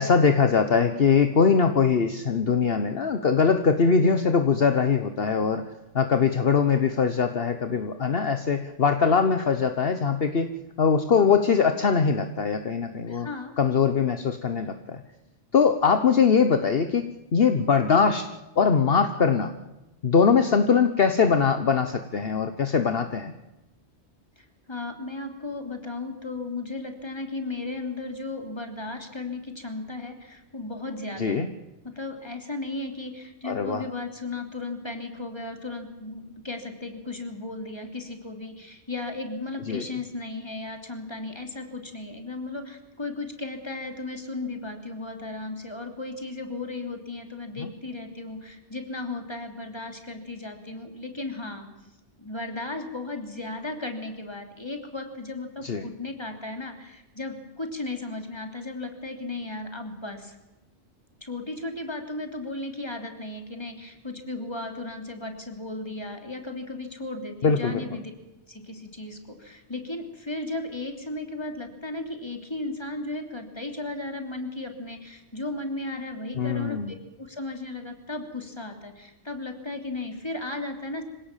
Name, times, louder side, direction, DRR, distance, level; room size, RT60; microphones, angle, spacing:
voice 1, 0.0-5.6 5.9-10.5 10.8-13.3 13.6-15.0 15.5-17.1 17.3-18.3 18.6-19.5 20.0-23.3 31.2-31.5 33.4-33.8 39.7-39.8 55.6-55.8 67.4-67.8 76.4-76.9, left 5 dB, 55° left, 8 dB, 1.3 m, -22 dB
voice 2, 13.1-13.5 24.4-31.5 31.8-51.7 52.2-60.4 61.2-68.0 68.5-81.0, left 2 dB, 25° left, 4 dB, 3.1 m, -35 dB
25.5 x 17.5 x 7.4 m, 1.0 s
omnidirectional pair, 1.2 m